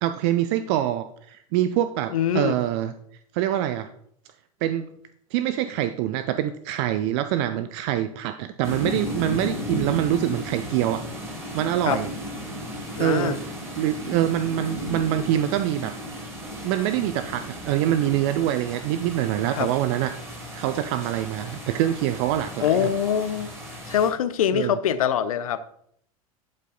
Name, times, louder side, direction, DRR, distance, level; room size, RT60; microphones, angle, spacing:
voice 1, 0.0-2.9 3.3-3.9 4.6-4.9 5.3-11.0 11.5-12.1 13.0-13.4 13.8-15.9 16.6-20.1 20.5-22.9 24.5-24.8, right 12 dB, 50° right, 11 dB, 0.5 m, -25 dB
voice 2, 2.1-2.6 11.9-12.0 13.0-13.4 19.5-19.7 22.6-23.5 23.9-25.6, left 9 dB, 70° left, 12 dB, 0.7 m, -23 dB
sound 1, 8.6-24.1, equal, 15° right, 4.0 m, -35 dB
12.0 x 5.5 x 3.9 m, 0.69 s
figure-of-eight pair, 85°, 19 cm